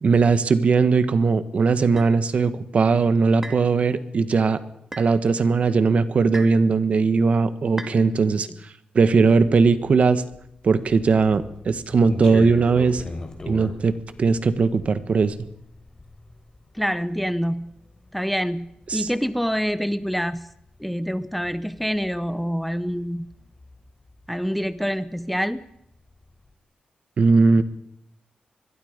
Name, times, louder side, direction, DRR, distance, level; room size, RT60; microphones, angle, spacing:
voice 1, 0.0-4.6 5.0-10.2 10.6-13.0 13.5-15.3 18.9-19.1 27.2-27.6, right 4 dB, 50° right, 12 dB, 1.4 m, -19 dB
sound 1, 2.0-2.1 3.4-3.7 4.9-5.1 6.3-6.6 7.8-8.0, right 2 dB, 15° right, 2.6 m, -36 dB
sound 2, 9.4-24.9 25.2-26.4, left 2 dB, 25° left, 3.9 m, -41 dB
voice 2, 16.7-17.7 18.1-20.5 20.8-23.3 24.3-25.6, equal, ahead, 13 dB, 0.7 m, -26 dB
25.0 x 21.5 x 5.3 m, 0.76 s
wide cardioid pair, 145°, 3 cm